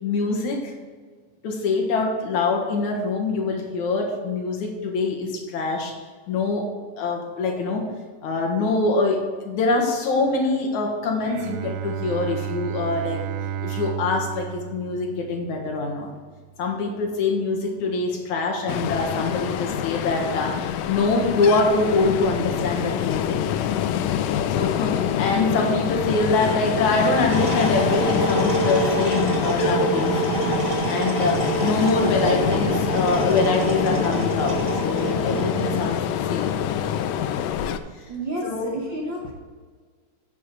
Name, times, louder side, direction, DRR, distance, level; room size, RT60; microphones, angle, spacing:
voice 1, 0.0-0.7 1.4-5.9 6.3-6.7 7.0-7.9 8.2-13.3 13.6-16.1 16.6-23.4 24.5-30.2 30.9-36.0 36.3-36.5 38.4-38.8, left 3 dB, 70° left, 1 dB, 2.8 m, -24 dB
Bowed string instrument, 11.2-16.5, right 10 dB, 85° right, 1.4 m, -33 dB
Ocean, 18.7-37.8, left 9 dB, 85° left, 1.4 m, -26 dB
sound 1, 27.3-35.9, right 2 dB, 45° right, 1.5 m, -26 dB
voice 2, 38.1-39.3, right 1 dB, 65° right, -1 dB, 1.2 m, -30 dB
10.0 x 7.6 x 4.8 m, 1.6 s
omnidirectional pair, 3.6 m